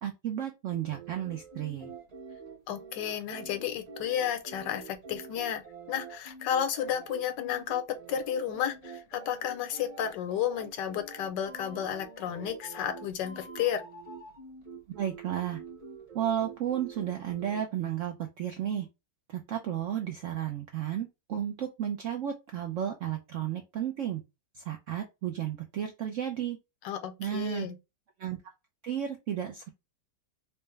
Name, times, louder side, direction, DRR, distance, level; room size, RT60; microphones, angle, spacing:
voice 1, 0.0-1.9 14.9-15.6 16.1-18.9 19.3-24.2 24.5-26.6 27.2-27.7 28.2-28.4 28.8-29.7, right 10 dB, 75° right, 0.7 m, -33 dB
sound 1, 0.7-17.6, right 4 dB, 25° right, 0.9 m, -46 dB
voice 2, 2.7-13.8 26.8-27.7, left 9 dB, 80° left, 1.3 m, -32 dB
4.5 x 2.0 x 3.2 m
omnidirectional pair, 1.9 m